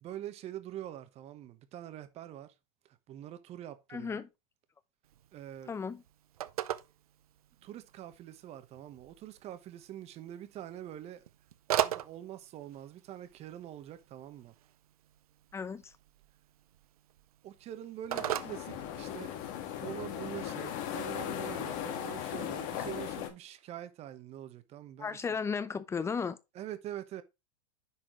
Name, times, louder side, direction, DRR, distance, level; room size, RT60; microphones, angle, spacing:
voice 1, 0.0-2.5 3.1-4.2 5.3-5.7 7.6-11.2 11.7-14.5 17.4-19.3 19.8-25.2 26.5-27.2, right 12 dB, 35° right, 1.2 m, -44 dB
voice 2, 3.9-4.3 5.7-6.0 15.5-15.9 25.0-26.4, left 5 dB, 15° left, 0.7 m, -35 dB
Telephone, 5.0-19.5, right 12 dB, 85° right, 0.6 m, -40 dB
sound 1, 18.1-23.3, left 10 dB, 50° left, 1.6 m, -38 dB
10.0 x 4.4 x 3.1 m
hypercardioid pair, 120°, 18 cm